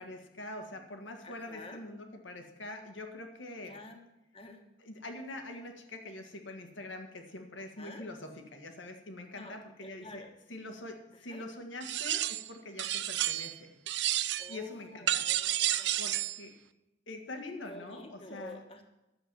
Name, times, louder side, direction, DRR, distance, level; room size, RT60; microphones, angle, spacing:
voice 1, 0.0-3.8 4.8-10.2 10.5-13.7 14.5-15.2 16.0-16.5 17.1-18.6, left 2 dB, 80° left, 4 dB, 1.7 m, -44 dB
voice 2, 1.2-1.8 3.6-4.0 4.3-4.6 7.8-8.1 9.3-10.3 11.1-11.5 14.4-16.3 17.6-18.8, left 1 dB, 30° left, 4 dB, 1.3 m, -49 dB
sound 1, 11.8-12.5 12.8-13.6 13.9-14.6 15.1-16.4, right 13 dB, 60° right, 0.5 m, -31 dB
11.5 x 7.2 x 7.6 m, 0.96 s
head